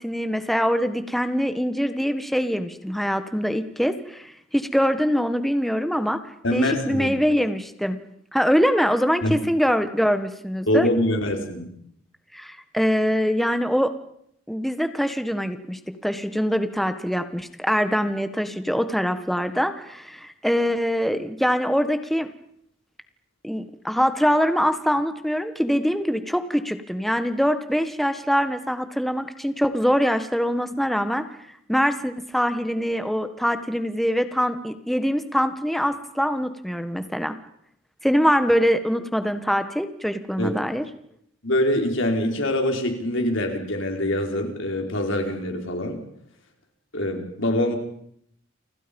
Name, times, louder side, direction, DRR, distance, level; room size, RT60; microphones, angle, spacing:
voice 1, 0.0-6.2 6.5-8.0 8.3-10.9 12.3-13.9 14.5-22.3 23.4-31.2 31.7-37.3 38.0-40.8, equal, ahead, 9 dB, 1.5 m, -23 dB
voice 2, 6.4-7.1 9.2-9.3 10.7-11.7 40.4-40.5 41.4-46.0 46.9-47.7, left 1 dB, 65° left, 3 dB, 4.9 m, -24 dB
30.0 x 25.5 x 5.4 m, 0.72 s
head